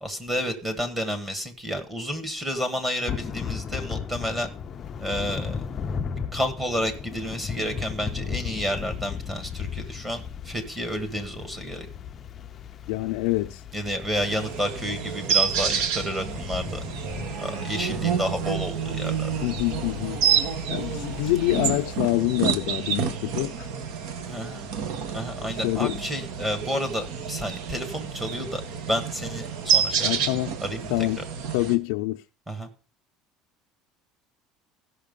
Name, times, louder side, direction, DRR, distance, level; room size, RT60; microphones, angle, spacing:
voice 1, 0.0-4.5 5.0-5.6 6.3-11.9 13.7-16.8 17.4-19.3 24.3-24.7 25.1-31.1 32.5-32.7, equal, 15° right, 1.4 m, -30 dB
Thunder / Rain, 3.1-22.1, left 6 dB, 25° left, 0.5 m, -36 dB
voice 2, 12.9-13.6 17.9-18.0 19.4-20.2 20.7-23.7 25.5-26.0 30.0-30.5 30.9-31.2 31.5-32.2, left 18 dB, 85° left, 0.5 m, -26 dB
sound 1, 14.2-31.8, right 7 dB, 65° right, 1.2 m, -29 dB
15.5 x 5.8 x 5.3 m
cardioid pair, 165°, 0 cm